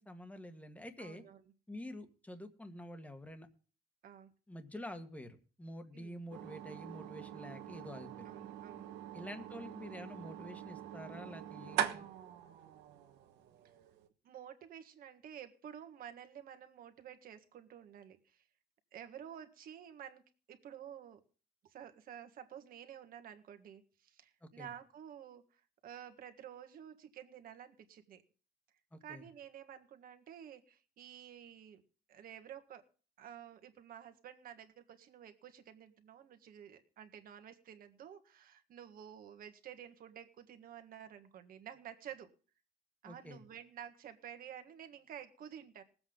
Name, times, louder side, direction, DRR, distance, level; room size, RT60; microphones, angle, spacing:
voice 1, 0.0-1.2 1.7-3.5 4.5-8.3 9.1-12.1 24.4-24.7 28.9-29.2 43.0-43.4, left 1 dB, 10° left, 7 dB, 1.6 m, -48 dB
voice 2, 1.0-1.4 4.0-4.3 5.9-6.2 8.3-8.9 14.2-18.4 18.9-20.2 20.5-21.2 21.6-28.2 29.0-31.8 32.1-32.9 33.2-42.3 43.0-45.8, right 9 dB, 60° right, 7 dB, 1.7 m, -51 dB
sound 1, 6.3-14.1, right 10 dB, 90° right, 1.3 m, -43 dB
20.0 x 7.9 x 3.8 m, 0.37 s
cardioid pair, 110°, 17 cm